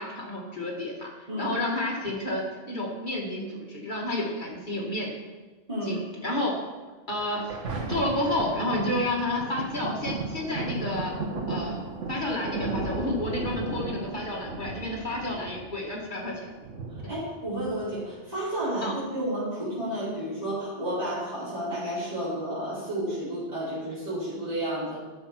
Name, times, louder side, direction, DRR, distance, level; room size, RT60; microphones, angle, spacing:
voice 1, 0.0-1.1 1.4-5.1 5.8-6.6 7.1-7.5 7.9-11.1 11.5-11.8 12.1-16.5 17.0-17.2 18.8-18.9, left 1 dB, 40° left, -3 dB, 2.2 m, -30 dB
Thunder, 7.2-18.2 18.8-18.9, right 3 dB, 90° right, 1.6 m, -34 dB
voice 2, 17.1-25.0, right 1 dB, 30° right, -12 dB, 4.2 m, -31 dB
10.5 x 7.2 x 5.8 m, 1.3 s
omnidirectional pair, 1.2 m